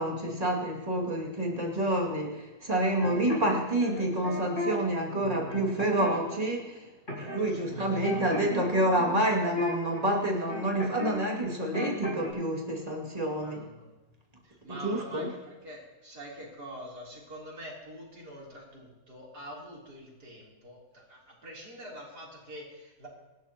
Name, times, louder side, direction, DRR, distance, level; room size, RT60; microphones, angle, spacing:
voice 1, 0.0-6.9 7.2-13.6 14.7-15.3, right 1 dB, 25° right, -2 dB, 2.6 m, -28 dB
sound 1, 3.0-4.7 5.2-6.4 7.1-7.4 7.7-11.2 11.4-12.3, left 1 dB, 45° left, 6.6 m, -35 dB
voice 2, 7.4-8.3 13.4-13.9 14.4-23.1, right 1 dB, 90° right, -4 dB, 4.2 m, -45 dB
25.5 x 12.5 x 3.0 m, 1.1 s
omnidirectional pair, 1.6 m